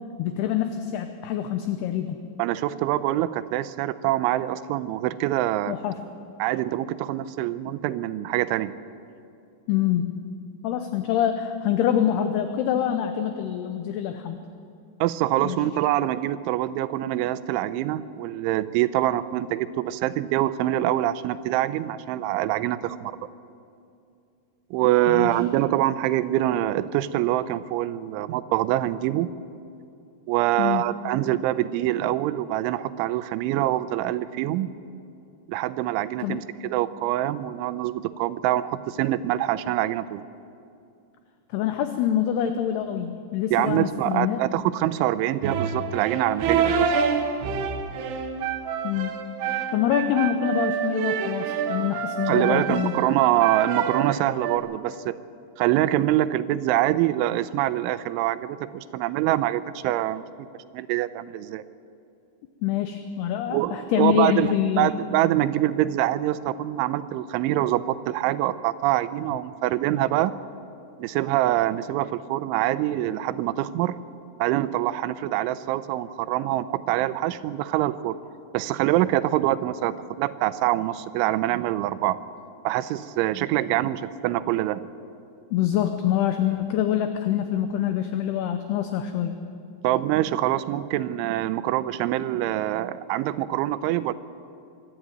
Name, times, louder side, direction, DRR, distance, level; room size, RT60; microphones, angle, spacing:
voice 1, 0.2-2.2 5.7-6.0 9.7-10.1 10.6-14.4 15.4-15.6 25.1-25.3 30.6-30.9 36.2-36.4 41.5-44.5 48.8-49.2 49.7-53.0 62.6-64.9 85.5-89.4, left 10 dB, 80° left, 8 dB, 2.4 m, -25 dB
voice 2, 2.4-5.8 6.4-8.7 15.0-23.2 24.7-29.3 30.3-34.7 35.5-40.2 43.5-46.9 52.3-55.2 55.6-60.2 60.7-61.6 63.5-70.3 71.0-74.0 74.4-78.2 78.5-82.2 82.6-84.8 89.8-94.1, right 14 dB, 85° right, 14 dB, 3.0 m, -25 dB
sound 1, 45.4-54.6, right 6 dB, 70° right, 2.9 m, -27 dB
24.5 x 12.5 x 9.1 m, 2.5 s
omnidirectional pair, 5.6 m